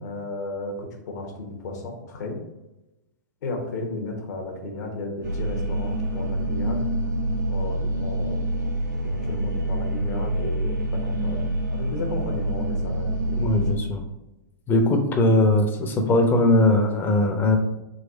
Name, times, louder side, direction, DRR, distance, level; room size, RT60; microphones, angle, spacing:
voice 1, 0.0-2.4 3.4-6.8 7.5-8.5 9.0-11.4 11.7-13.6, left 2 dB, 65° left, 2 dB, 1.1 m, -34 dB
sound 1, 5.2-13.7, right 1 dB, 70° right, 1.1 m, -26 dB
voice 2, 13.4-14.0 14.7-17.6, left 1 dB, 20° left, 3 dB, 0.8 m, -20 dB
4.0 x 2.6 x 3.9 m, 0.97 s
hypercardioid pair, 115°, 10 cm